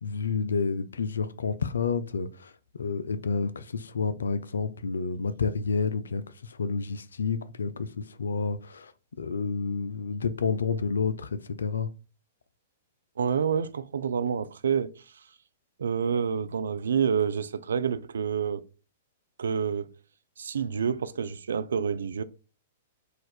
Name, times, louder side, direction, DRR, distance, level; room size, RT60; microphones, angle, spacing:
voice 1, 0.0-2.5 2.8-8.9 9.2-11.9, left 5 dB, 80° left, 0.4 m, -29 dB
voice 2, 13.2-15.0 15.8-18.6 19.4-19.9 20.4-22.2, right 7 dB, 75° right, 0.3 m, -28 dB
4.0 x 2.5 x 4.3 m
hypercardioid pair, 110°, 0 cm